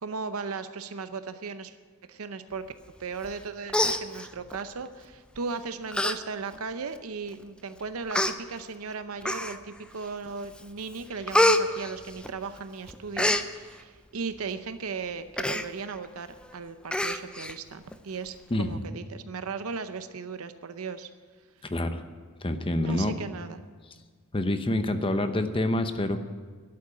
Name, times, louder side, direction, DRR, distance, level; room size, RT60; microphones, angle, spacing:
voice 1, 0.0-1.8 2.1-2.6 3.0-16.3 16.5-21.1 22.8-23.6, right 4 dB, 75° right, 10 dB, 0.7 m, -37 dB
Human voice, 3.2-3.4 3.7-4.6 5.4-5.5 5.9-6.2 6.5-6.6 7.4-7.5 8.1-8.3 9.2-9.8 10.3-10.6 10.9-12.6 12.9-13.4 15.4-15.7 16.0-16.1 16.4-16.5 16.9-17.5 17.9-18.0, left 1 dB, 5° left, 0.5 m, -26 dB
voice 2, 18.5-18.8 21.6-22.0 22.4-23.1 24.3-26.2, left 1 dB, 25° left, 8 dB, 0.8 m, -27 dB
11.5 x 8.7 x 9.8 m, 1.5 s
head